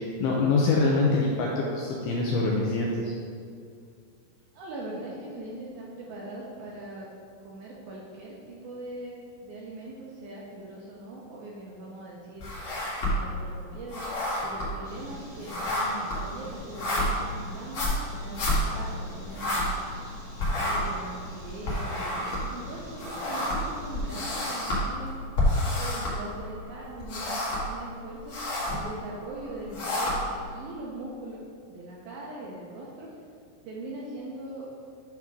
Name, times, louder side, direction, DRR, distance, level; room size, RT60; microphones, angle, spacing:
voice 1, 0.0-3.1, left 3 dB, 85° left, -2 dB, 2.2 m, -25 dB
voice 2, 4.5-7.1 7.4-12.4 13.0-19.7 20.3-25.2 25.6-28.4 28.6-31.4 31.7-33.1 33.6-34.7, right 2 dB, 75° right, -4 dB, 2.2 m, -41 dB
sound 1, 12.4-13.4 13.7-20.1 20.4-26.6 26.9-27.8 28.1-28.8 29.4-30.4, left 1 dB, 55° left, 1.9 m, -29 dB
sound 2, 14.8-24.5, equal, 60° right, 0.6 m, -46 dB
9.3 x 3.6 x 6.0 m, 2.3 s
omnidirectional pair, 5.1 m